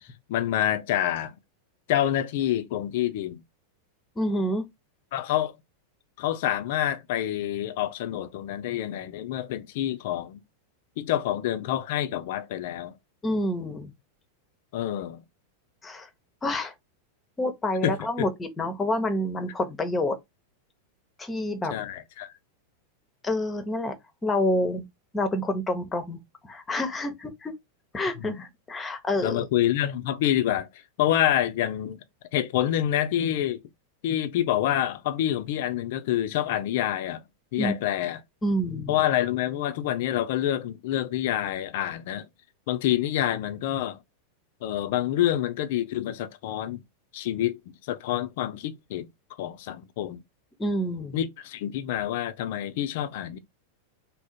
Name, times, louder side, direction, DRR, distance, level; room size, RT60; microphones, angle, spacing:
voice 1, 0.3-1.4 1.9-3.4 5.1-5.6 6.2-10.4 11.0-12.9 14.7-15.2 17.8-18.3 21.7-22.3 28.2-28.4 29.2-30.7 31.0-32.0 32.3-33.6 34.0-37.2 37.5-38.2 38.9-42.2 42.7-44.0 44.6-46.8 47.1-49.1 49.4-50.2 51.1-53.4, left 12 dB, 50° left, 0.5 m, -27 dB
voice 2, 4.2-4.7 13.2-13.9 15.8-16.1 16.4-16.7 17.4-20.2 21.2-21.7 23.2-23.9 24.2-24.8 25.1-26.2 26.4-27.5 27.9-29.5 37.6-37.7 38.4-39.0 50.6-51.2, left 1 dB, 15° left, 0.8 m, -28 dB
3.6 x 2.0 x 4.1 m
figure-of-eight pair, 90°, 0 cm